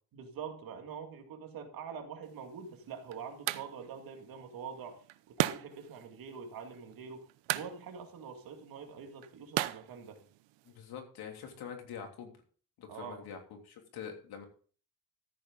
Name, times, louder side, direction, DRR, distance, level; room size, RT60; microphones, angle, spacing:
voice 1, 0.1-10.2 12.9-13.2, right 6 dB, 55° right, 4 dB, 2.3 m, -45 dB
sound 1, 2.2-10.8, right 16 dB, 90° right, 0.8 m, -39 dB
voice 2, 10.6-12.3 12.8-14.5, left 7 dB, 60° left, 3 dB, 3.2 m, -45 dB
14.0 x 8.8 x 3.9 m, 0.42 s
cardioid pair, 180°, 42 cm